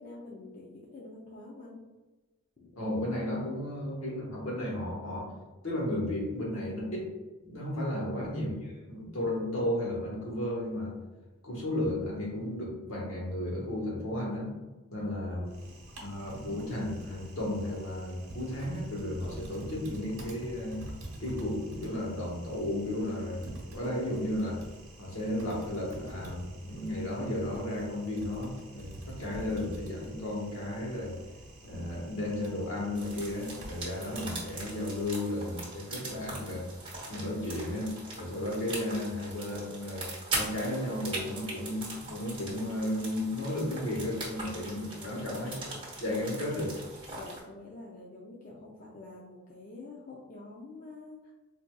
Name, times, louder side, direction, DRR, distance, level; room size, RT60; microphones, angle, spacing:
voice 1, 0.0-1.8 2.6-2.7 15.0-15.7 45.0-45.7 47.2-51.3, left 2 dB, 40° left, -4 dB, 0.4 m, -47 dB
voice 2, 2.7-5.3 5.6-7.1 7.4-10.9 11.4-14.5 14.9-15.5 16.0-20.7 21.2-24.6 25.0-31.1 31.6-36.6 37.1-37.9 38.2-40.1 40.3-45.5 46.0-46.7, left 1 dB, 75° left, -3 dB, 1.2 m, -34 dB
Typing, 15.5-35.1, right 1 dB, 70° right, 1.0 m, -47 dB
sound 1, 32.9-47.4, right 2 dB, 25° right, 1.0 m, -41 dB
4.6 x 2.6 x 2.2 m, 1.1 s
head